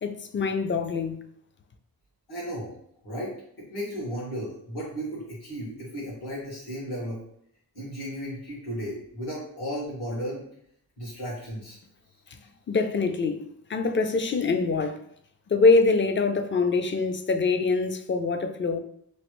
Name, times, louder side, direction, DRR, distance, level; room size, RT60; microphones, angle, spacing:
voice 1, 0.0-1.2 12.7-15.0 15.5-18.8, left 4 dB, 30° left, 0.4 m, -24 dB
voice 2, 2.3-2.7 3.0-7.2 7.7-10.4 11.0-11.8, equal, 75° left, 1.5 m, -34 dB
3.1 x 2.4 x 3.0 m
cardioid pair, 60°, 39 cm